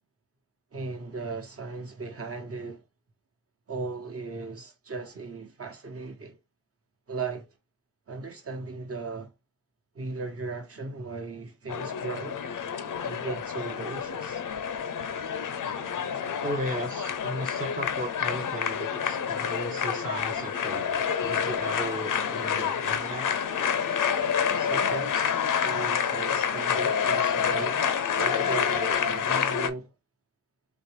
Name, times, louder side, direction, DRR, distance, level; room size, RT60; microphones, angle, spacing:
voice 1, 0.7-2.8 3.7-6.4 7.1-7.5 8.1-9.3 9.9-12.4 13.0-14.4 24.6-27.9 28.1-29.9, right 4 dB, 50° right, 1.0 m, -37 dB
sound 1, 11.7-29.7, left 7 dB, 85° left, 0.6 m, -28 dB
voice 2, 16.4-23.3, right 1 dB, 25° right, 0.6 m, -36 dB
4.3 x 3.1 x 3.1 m
wide cardioid pair, 175°, 31 cm